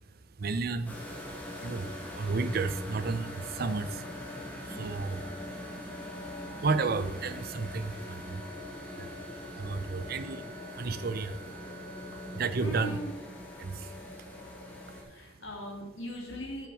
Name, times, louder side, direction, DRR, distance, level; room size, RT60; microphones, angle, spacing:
voice 1, 0.4-1.0 1.6-1.9 2.2-4.1 4.7-5.2 6.6-8.4 9.0-9.1 9.6-11.4 12.4-12.9 13.6-13.9, right 4 dB, 50° right, 12 dB, 0.5 m, -32 dB
sound 1, 0.8-15.0, left 1 dB, 10° left, 1.6 m, -42 dB
sound 2, 0.9-12.4, right 7 dB, 75° right, 1.5 m, -52 dB
voice 2, 12.6-13.1 14.9-16.7, equal, 70° left, -1 dB, 2.4 m, -40 dB
8.6 x 6.3 x 4.9 m, 1.1 s
head